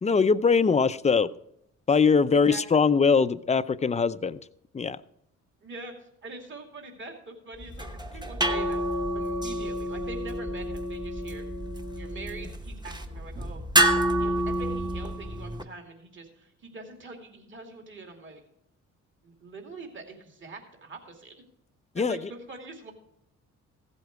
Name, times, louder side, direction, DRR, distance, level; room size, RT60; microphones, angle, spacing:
voice 1, 0.0-1.3 1.9-4.4 4.7-5.0 22.0-22.2, left 5 dB, 25° left, 13 dB, 0.5 m, -22 dB
voice 2, 2.3-2.6 5.6-11.4 12.0-13.6 13.9-18.4 19.2-21.3 21.9-22.9, right 3 dB, 40° right, 3 dB, 2.5 m, -44 dB
sound 1, 7.6-15.6, right 1 dB, 15° right, 1.1 m, -28 dB
15.5 x 8.1 x 4.7 m, 0.77 s
cardioid pair, 90°, 30 cm